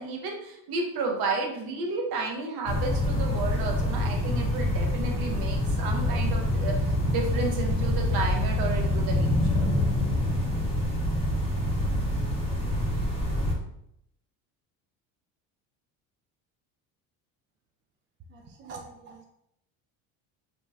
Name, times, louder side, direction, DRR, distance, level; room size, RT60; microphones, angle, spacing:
voice 1, 0.0-9.7, right 3 dB, 60° right, 2 dB, 0.8 m, -32 dB
sound 1, 2.7-13.5, left 1 dB, 15° left, 1.1 m, -26 dB
voice 2, 18.3-19.2, right 4 dB, 30° right, 1 dB, 0.4 m, -45 dB
2.9 x 2.7 x 2.2 m, 0.76 s
supercardioid pair, 85°, 41 cm